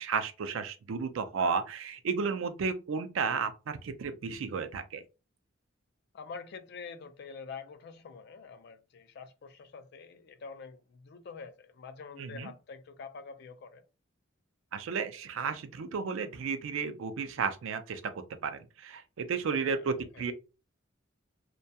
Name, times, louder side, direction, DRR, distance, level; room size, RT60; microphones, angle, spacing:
voice 1, 0.0-5.0 12.2-12.5 14.7-18.0 18.4-20.3, right 5 dB, 90° right, 0.4 m, -33 dB
voice 2, 6.1-13.8 19.5-20.3, left 5 dB, 55° left, 0.4 m, -46 dB
2.7 x 2.2 x 2.2 m
head